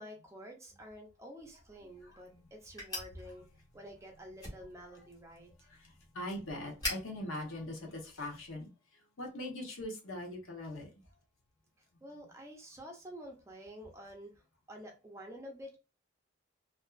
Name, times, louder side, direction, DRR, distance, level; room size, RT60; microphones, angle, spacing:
voice 1, 0.0-3.5 3.7-5.7 12.0-15.8, equal, 15° right, 1 dB, 0.5 m, -49 dB
sound 1, 1.4-8.5, left 2 dB, 20° left, 1.1 m, -46 dB
voice 2, 2.1-2.4 5.7-8.7 9.2-10.9, left 1 dB, 85° left, 1 dB, 0.9 m, -41 dB
2.5 x 2.3 x 2.3 m, 0.30 s
head